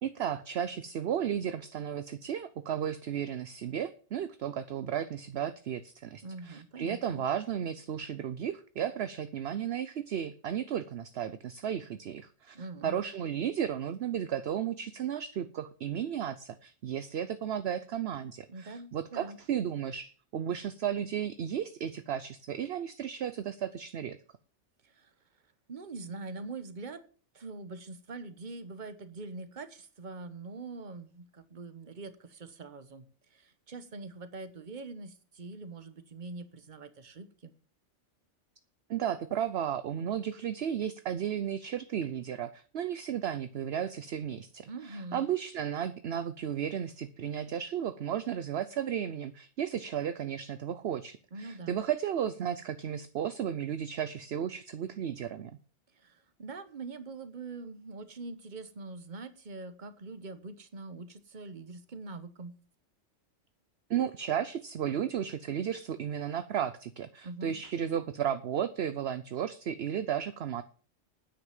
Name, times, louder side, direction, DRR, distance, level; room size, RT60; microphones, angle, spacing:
voice 1, 0.0-24.2 38.9-55.6 63.9-70.6, right 9 dB, 60° right, 12 dB, 0.9 m, -34 dB
voice 2, 6.2-7.2 12.5-13.0 18.5-19.4 24.8-25.1 25.7-27.0 27.3-33.1 33.3-37.5 44.7-45.3 51.3-51.8 56.0-62.5 67.2-67.6, right 3 dB, 40° right, 11 dB, 1.2 m, -43 dB
9.7 x 8.4 x 7.3 m, 0.42 s
omnidirectional pair, 1.3 m